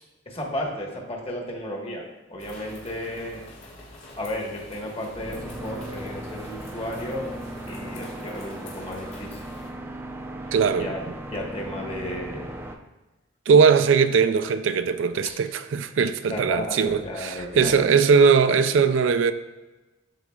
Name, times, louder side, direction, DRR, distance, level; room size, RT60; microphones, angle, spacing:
voice 1, 0.3-3.4 4.2-7.3 7.7-9.4 10.4-10.5 10.8-12.6 16.3-17.8, left 1 dB, 30° left, 1.3 m, -33 dB
sound 1, 2.4-9.7, left 2 dB, 80° left, 1.8 m, -46 dB
sound 2, 5.1-12.7, right 1 dB, 10° right, 0.5 m, -37 dB
voice 2, 10.5-10.9 13.5-19.3, right 6 dB, 75° right, 0.4 m, -20 dB
12.0 x 4.1 x 2.3 m
head